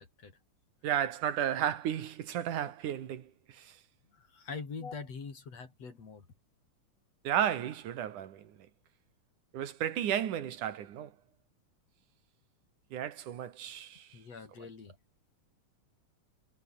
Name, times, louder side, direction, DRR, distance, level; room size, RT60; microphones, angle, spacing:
voice 1, 0.8-3.8 7.2-8.6 9.5-11.1 12.9-14.2, right 10 dB, 80° right, 3.2 m, -33 dB
voice 2, 4.1-6.3 14.1-15.0, left 5 dB, 55° left, 5.1 m, -43 dB
omnidirectional pair, 3.5 m